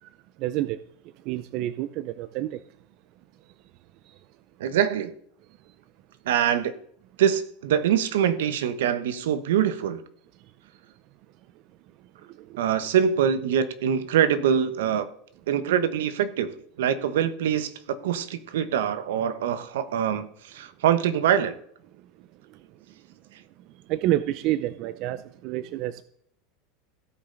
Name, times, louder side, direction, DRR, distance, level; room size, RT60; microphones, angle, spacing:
voice 1, 0.4-0.8 1.3-2.6 12.4-12.6 23.9-26.0, right 14 dB, 55° right, 0.5 m, -28 dB
voice 2, 4.6-5.1 6.2-6.7 7.2-10.0 12.6-15.1 15.5-21.6, right 9 dB, 85° right, 1.1 m, -24 dB
17.0 x 5.7 x 4.0 m
supercardioid pair, 125°, 0 cm